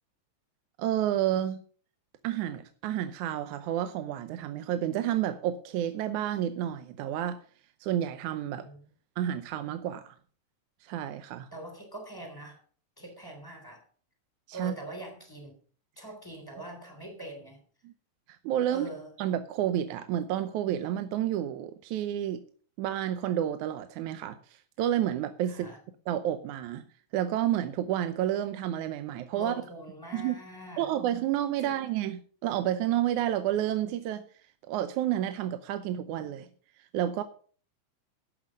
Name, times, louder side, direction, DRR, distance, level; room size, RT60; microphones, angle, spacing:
voice 1, 0.8-1.6 2.2-7.4 7.8-8.7 9.2-10.2 10.8-11.5 14.5-14.7 17.8-17.9 18.4-18.9 19.2-22.4 22.8-25.7 26.1-26.8 27.1-29.6 30.1-30.4 30.8-34.2 34.7-36.5 36.9-37.2, right 11 dB, 75° right, 10 dB, 2.0 m, -30 dB
voice 2, 11.5-12.6 13.0-13.8 14.5-15.5 16.0-17.6 18.7-19.1 25.4-25.8 29.3-30.9 31.6-31.8, right 1 dB, 5° left, 4 dB, 3.1 m, -42 dB
12.0 x 7.9 x 6.4 m, 0.44 s
omnidirectional pair, 3.8 m